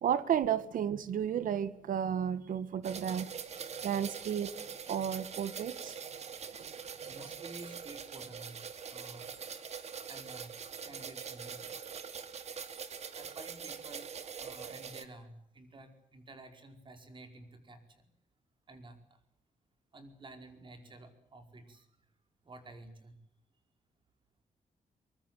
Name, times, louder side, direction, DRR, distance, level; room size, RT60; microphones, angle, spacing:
voice 1, 0.0-3.3 3.8-5.9, right 9 dB, 75° right, 15 dB, 1.4 m, -32 dB
sound 1, 2.8-15.1, right 6 dB, 55° right, 2.3 m, -43 dB
voice 2, 7.0-8.6 8.9-9.3 10.1-11.6 13.1-14.1 14.4-18.1 18.7-19.0 19.9-21.9 22.4-23.1, right 2 dB, 35° right, 7 dB, 5.0 m, -51 dB
23.5 x 23.0 x 9.1 m, 0.67 s
wide cardioid pair, 135°, 14 cm